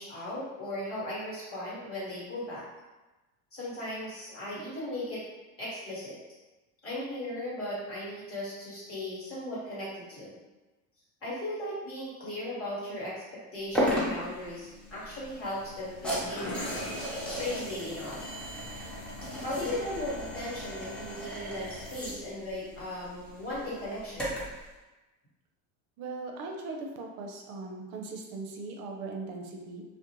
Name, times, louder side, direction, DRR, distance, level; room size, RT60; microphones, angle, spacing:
voice 1, 0.0-2.6 3.5-5.2 5.6-6.2 6.8-10.4 11.2-16.7 17.2-18.2 19.4-24.4, left 1 dB, 35° left, -8 dB, 1.2 m, -37 dB
sound 1, 13.7-24.6, equal, 5° left, 0.8 m, -36 dB
sound 2, 15.3-18.9, left 1 dB, 85° left, 0.8 m, -42 dB
voice 2, 26.0-29.8, right 3 dB, 65° right, 2 dB, 0.6 m, -39 dB
2.4 x 2.1 x 2.9 m, 1.1 s
supercardioid pair, 100°, 41 cm